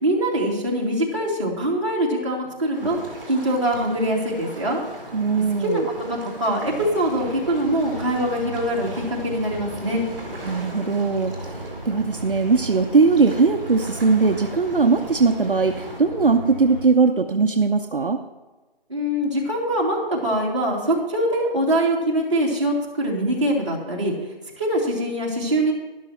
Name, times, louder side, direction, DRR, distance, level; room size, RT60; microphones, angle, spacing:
voice 1, 0.0-3.0 3.3-4.8 5.6-10.0 18.9-24.1 24.6-25.7, right 1 dB, 30° right, -5 dB, 2.4 m, -23 dB
sound 1, 2.7-16.0, right 1 dB, 5° right, 1.5 m, -39 dB
voice 2, 5.1-5.9 10.4-11.5 11.8-18.2, right 4 dB, 60° right, 5 dB, 0.7 m, -20 dB
sound 2, 6.6-16.9, equal, 50° left, 2.7 m, -38 dB
12.0 x 11.5 x 3.0 m, 1.2 s
figure-of-eight pair, 175°, 30 cm